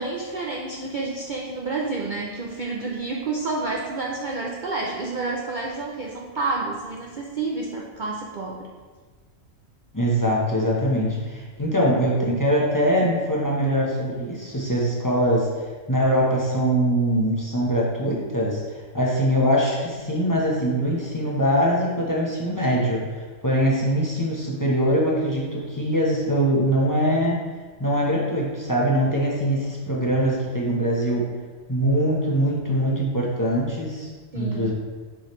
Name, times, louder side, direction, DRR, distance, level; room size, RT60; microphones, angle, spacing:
voice 1, 0.0-8.7 34.3-34.7, right 3 dB, 50° right, -1 dB, 0.6 m, -29 dB
voice 2, 9.9-27.4 27.8-31.3 31.7-34.7, equal, 15° left, -4 dB, 0.9 m, -23 dB
7.1 x 5.0 x 3.1 m, 1.4 s
omnidirectional pair, 1.3 m